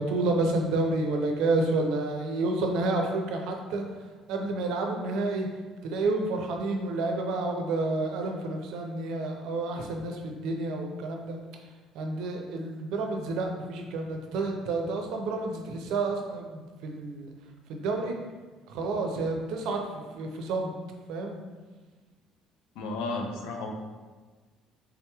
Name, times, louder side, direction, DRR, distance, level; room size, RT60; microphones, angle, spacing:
voice 1, 0.0-5.5 5.8-11.4 11.9-17.3 17.7-18.1 18.7-19.8 20.2-20.7 21.1-21.4, right 2 dB, 75° right, 2 dB, 0.5 m, -30 dB
voice 2, 22.8-23.7, left 3 dB, 90° left, 2 dB, 0.4 m, -33 dB
3.5 x 2.9 x 2.3 m, 1.4 s
cardioid pair, 155°, 0 cm